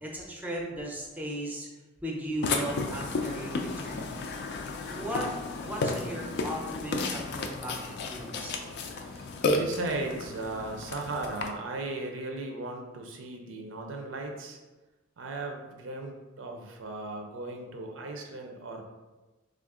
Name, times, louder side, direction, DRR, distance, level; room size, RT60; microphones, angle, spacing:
voice 1, 0.0-1.7 2.0-4.2 4.9-5.3 5.6-8.5, equal, 10° right, -1 dB, 0.5 m, -36 dB
Burping eructation, 2.4-11.5, left 3 dB, 60° left, 0.4 m, -33 dB
voice 2, 9.0-14.6 15.2-18.8, right 2 dB, 75° right, 3 dB, 0.5 m, -37 dB
3.4 x 2.4 x 3.5 m, 1.2 s
head